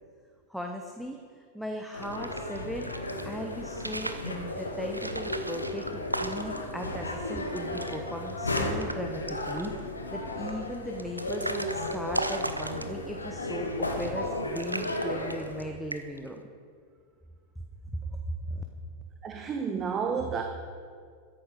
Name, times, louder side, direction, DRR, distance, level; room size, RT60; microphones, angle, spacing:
voice 1, 0.5-2.9 3.2-16.4 18.5-18.6, equal, ahead, 2 dB, 1.0 m, -38 dB
sound 1, 1.9-15.6, left 1 dB, 80° left, 1.5 m, -34 dB
sound 2, 1.9-3.2 3.7-4.3 4.9-6.7 7.1-7.2 7.5-8.0 8.3-9.0 9.3-9.8 10.5-13.2 13.9-14.3 14.6-15.6 15.9-16.3, right 1 dB, 85° right, 0.7 m, -36 dB
voice 2, 19.2-20.4, right 6 dB, 25° right, 4 dB, 1.0 m, -30 dB
13.5 x 11.0 x 5.0 m, 2.1 s
figure-of-eight pair, 90°, 0 cm